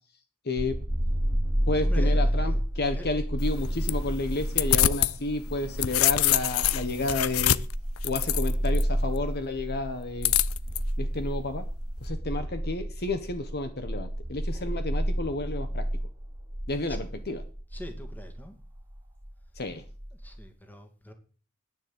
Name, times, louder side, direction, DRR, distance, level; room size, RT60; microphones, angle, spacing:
voice 1, 0.4-0.8 1.7-7.6 8.0-10.3 11.0-11.6 12.0-15.8 16.7-17.4 19.5-19.8, left 2 dB, 50° left, 8 dB, 1.3 m, -31 dB
sound 1, 0.6-20.5, equal, 20° right, 2.1 m, -30 dB
voice 2, 1.8-2.5 2.9-3.1 16.9-17.0 17.7-18.6 20.1-21.1, left 1 dB, 10° left, 5 dB, 2.3 m, -44 dB
sound 2, 3.4-5.1 5.5-8.8 10.2-10.8, left 13 dB, 70° left, 0.6 m, -26 dB
11.0 x 9.7 x 8.1 m, 0.40 s
head